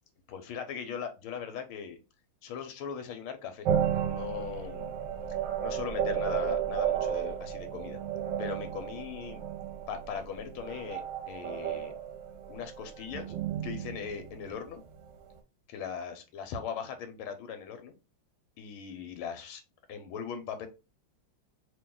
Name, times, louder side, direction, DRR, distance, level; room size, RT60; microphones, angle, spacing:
voice 1, 0.3-2.0 2.4-3.7 4.0-4.9 5.6-8.0 8.4-9.4 9.9-11.0 11.3-11.9 12.5-13.3 13.6-14.8 15.7-17.9 18.6-19.6 19.9-20.7, left 7 dB, 90° left, 8 dB, 1.6 m, -39 dB
sound 1, 3.6-15.1, right 9 dB, 70° right, 1.2 m, -33 dB
3.1 x 3.0 x 3.6 m, 0.28 s
omnidirectional pair, 2.3 m